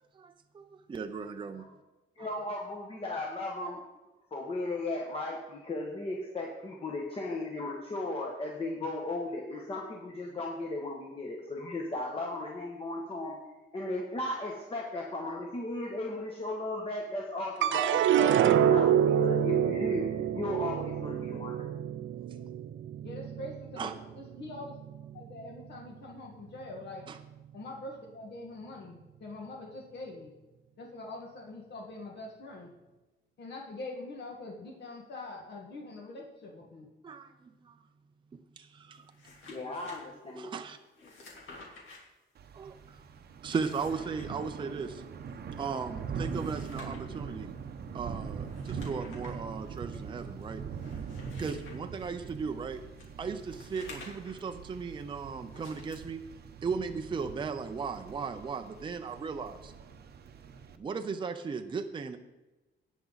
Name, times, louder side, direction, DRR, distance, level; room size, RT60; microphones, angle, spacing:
voice 1, 0.2-1.7 2.2-2.3 23.8-23.9 27.1-27.2 37.0-37.8 38.3-39.1 40.3-40.8 42.5-43.0 43.4-45.0 45.6-47.5 47.9-50.6 51.4-52.8 53.2-56.2 56.6-59.7 60.8-62.2, right 5 dB, 25° right, 6 dB, 0.5 m, -37 dB
voice 2, 2.2-3.8 4.3-13.4 13.7-21.7 39.5-40.5, left 2 dB, 30° left, -1 dB, 1.2 m, -36 dB
sound 1, 17.6-24.0 24.5-25.2, right 9 dB, 80° right, 0.5 m, -27 dB
voice 3, 23.0-23.9 24.1-24.7 25.1-27.0 27.5-30.3 30.8-32.7 33.4-36.9, left 2 dB, 60° left, 0 dB, 1.7 m, -43 dB
sound 2, 39.0-40.0 40.9-42.0 43.3-44.3 46.1-47.2 48.4-49.4 49.9-50.0 50.7-52.1 53.0-54.5 55.5-55.9, left 3 dB, 85° left, 3.0 m, -51 dB
Thunder / Rain, 42.4-60.8, right 6 dB, 55° right, 0.8 m, -42 dB
18.0 x 6.1 x 4.0 m, 1.1 s
wide cardioid pair, 175°, 20 cm